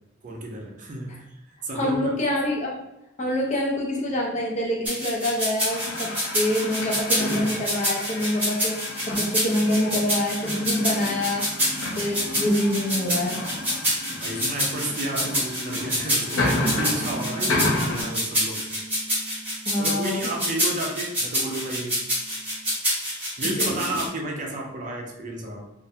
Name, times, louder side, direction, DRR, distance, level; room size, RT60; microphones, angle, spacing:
voice 1, 0.2-1.2 1.6-2.1 14.1-18.6 19.8-22.0 23.4-25.6, right 1 dB, 40° right, 0 dB, 0.4 m, -31 dB
voice 2, 1.7-2.8 3.2-8.8 9.1-11.4 12.0-13.4 14.3-14.4 19.7-20.3 23.6-24.0, left 1 dB, 35° left, -2 dB, 0.5 m, -26 dB
sound 1, 4.8-24.1, equal, 10° right, 0.9 m, -27 dB
sound 2, 5.7-18.0, left 2 dB, 85° left, 0.5 m, -31 dB
sound 3, 16.5-21.0 21.3-22.7, right 4 dB, 55° left, 1.0 m, -41 dB
2.4 x 2.1 x 2.7 m, 0.89 s
head